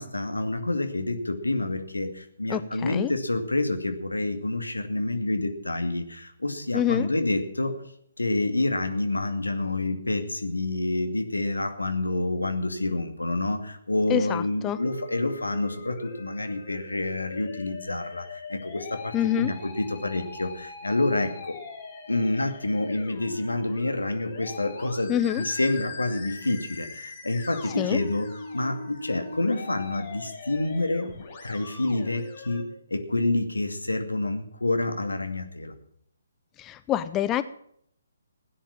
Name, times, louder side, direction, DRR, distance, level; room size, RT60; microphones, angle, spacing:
voice 1, 0.0-7.7 8.2-21.6 22.1-28.3 28.5-31.1 31.4-32.6 32.9-35.7, left 2 dB, 80° left, 7 dB, 2.4 m, -28 dB
voice 2, 2.5-3.1 6.7-7.1 14.1-14.8 19.1-19.5 25.1-25.4 27.8-28.0 36.6-37.4, left 11 dB, 15° left, 14 dB, 0.6 m, -26 dB
Musical instrument, 14.6-32.6, left 4 dB, 35° left, 6.1 m, -41 dB
16.5 x 10.0 x 7.3 m, 0.67 s
figure-of-eight pair, 135°, 0 cm